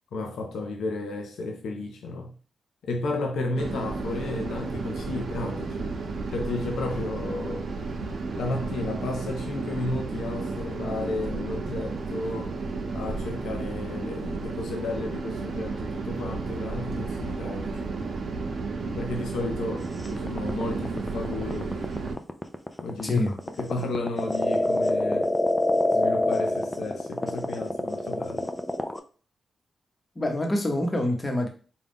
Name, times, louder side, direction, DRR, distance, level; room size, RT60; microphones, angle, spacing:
voice 1, 0.1-2.3 2.8-5.9 6.3-7.7 8.3-12.5 12.9-17.9 19.0-21.8 22.8-23.2 23.6-25.3 25.9-28.5, left 2 dB, 85° left, 0.6 m, -33 dB
sound 1, 3.6-22.2, right 4 dB, 60° right, 0.7 m, -33 dB
sound 2, 20.0-29.0, left 1 dB, 15° left, 0.5 m, -26 dB
voice 2, 23.0-23.3 30.1-31.5, left 1 dB, 30° left, 1.0 m, -26 dB
3.9 x 2.3 x 3.6 m
cardioid pair, 65°, 0 cm